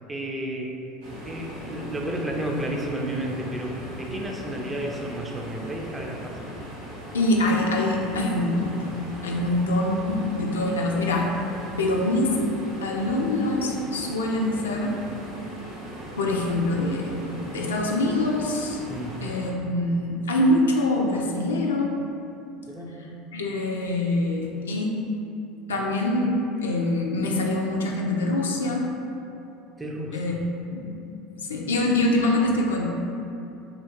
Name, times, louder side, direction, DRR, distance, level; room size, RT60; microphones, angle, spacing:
voice 1, 0.1-0.7 1.2-6.4 18.9-19.2 22.7-23.0 29.8-30.2, right 1 dB, 20° right, 0 dB, 0.4 m, -32 dB
sound 1, 1.0-19.5, equal, 80° right, 0.8 m, -39 dB
voice 2, 7.1-11.3 11.8-12.4 12.8-14.9 16.2-18.8 19.2-21.9 23.3-25.0 25.7-28.8 30.1-30.4 30.7-30.9 31.4-32.8, left 1 dB, 80° left, 0 dB, 0.3 m, -24 dB
3.0 x 2.4 x 2.9 m, 2.7 s
hypercardioid pair, 75°, 0 cm